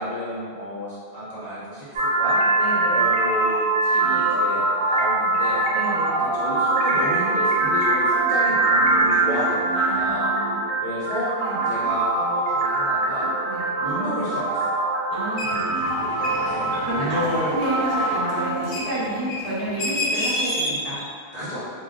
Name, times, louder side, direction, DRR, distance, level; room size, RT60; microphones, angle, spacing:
voice 1, 0.0-1.9 2.2-2.4 2.9-5.7 6.2-10.3 10.8-11.3 11.6-13.3 13.8-14.7 16.4-17.5 21.3-21.6, equal, 45° left, -10 dB, 0.8 m, -31 dB
sound 1, 2.0-18.7, right 2 dB, 85° right, 1.0 m, -23 dB
voice 2, 2.6-3.0 5.7-6.2 9.7-10.6 11.4-11.6 13.4-13.7 15.1-15.7 16.8-17.2 17.5-21.0, right 1 dB, 40° right, -11 dB, 0.7 m, -30 dB
sound 2, 15.4-21.1, left 1 dB, 80° left, 1.0 m, -30 dB
2.5 x 2.1 x 3.6 m, 2.1 s
omnidirectional pair, 1.1 m